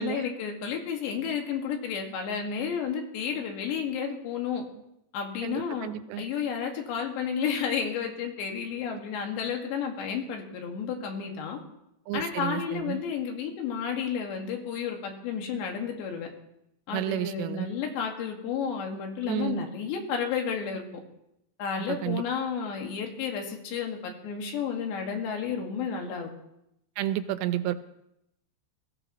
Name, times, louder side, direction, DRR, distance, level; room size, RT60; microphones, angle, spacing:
voice 1, 0.0-4.7 5.1-5.9 6.2-11.6 12.1-16.3 16.9-20.8 21.6-26.3, left 7 dB, 90° left, 2 dB, 4.1 m, -32 dB
voice 2, 5.4-6.2 12.1-13.0 16.9-17.7 19.3-19.6 22.0-22.2 27.0-27.7, right 12 dB, 90° right, 12 dB, 2.9 m, -31 dB
21.5 x 15.0 x 3.0 m, 0.83 s
omnidirectional pair, 4.9 m